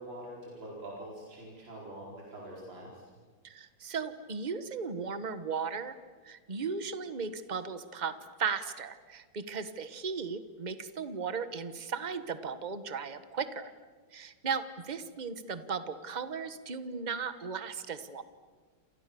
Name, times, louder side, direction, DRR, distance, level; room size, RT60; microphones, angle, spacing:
voice 1, 0.0-3.0, right 1 dB, 60° right, -3 dB, 5.3 m, -44 dB
voice 2, 3.4-6.0 6.2-13.6 14.1-18.2, right 5 dB, 25° right, 12 dB, 1.0 m, -36 dB
29.0 x 28.0 x 7.0 m, 1.5 s
omnidirectional pair, 2.4 m